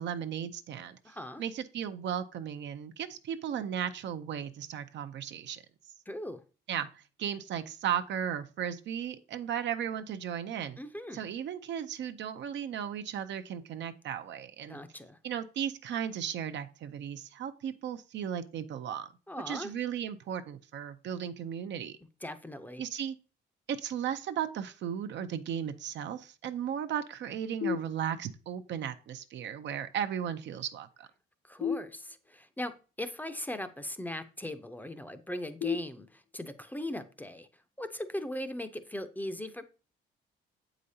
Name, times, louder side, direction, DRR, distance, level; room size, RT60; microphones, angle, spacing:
voice 1, 0.0-1.0 1.4-5.6 6.7-10.8 11.1-14.8 15.2-19.1 19.5-22.0 22.8-23.2 23.7-31.1, right 9 dB, 65° right, 8 dB, 0.6 m, -35 dB
voice 2, 1.0-1.4 6.1-6.4 10.8-11.3 14.7-15.2 19.3-19.7 22.2-22.8 31.5-32.7 33.0-37.5 37.8-39.7, left 1 dB, 10° left, 10 dB, 0.6 m, -39 dB
Dopey Beeps, 27.6-28.6 31.6-32.6 35.6-36.6, left 7 dB, 85° left, 0.9 m, -36 dB
7.6 x 5.0 x 2.7 m, 0.35 s
cardioid pair, 90°, 20 cm